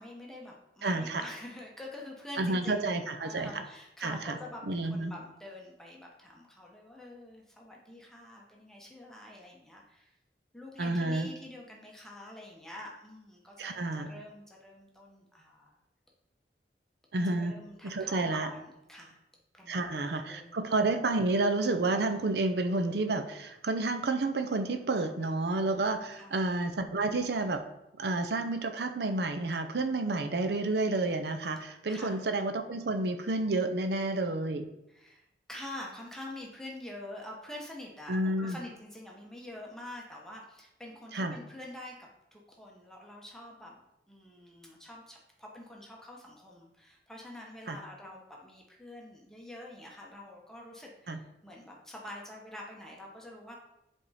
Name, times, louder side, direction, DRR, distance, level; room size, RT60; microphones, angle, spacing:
voice 1, 0.0-10.1 10.5-15.7 17.2-19.2 19.5-20.6 26.1-26.5 31.9-32.2 34.9-43.8 44.1-53.6, left 1 dB, 5° left, -2 dB, 1.0 m, -46 dB
voice 2, 0.8-1.2 2.4-3.6 4.0-4.4 4.7-5.1 10.8-11.3 13.6-14.1 17.1-17.6 17.8-18.5 19.7-27.6 28.0-34.7 38.1-38.6 41.1-41.4 47.7-47.8 51.1-51.2, right 2 dB, 70° right, 7 dB, 0.6 m, -30 dB
8.2 x 3.6 x 4.1 m, 0.86 s
head